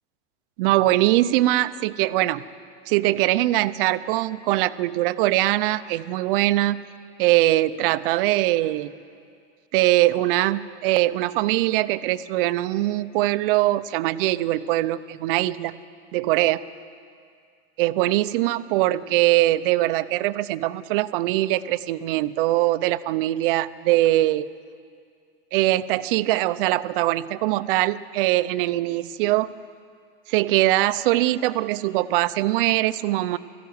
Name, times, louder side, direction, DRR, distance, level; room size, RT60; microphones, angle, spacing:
voice 1, 0.6-2.4 2.9-6.8 7.2-8.9 9.7-15.8 16.1-16.6 17.8-24.5 25.5-29.5 30.3-33.4, right 16 dB, 55° right, 14 dB, 0.7 m, -22 dB
19.0 x 14.5 x 9.4 m, 2.3 s
supercardioid pair, 155°, 33 cm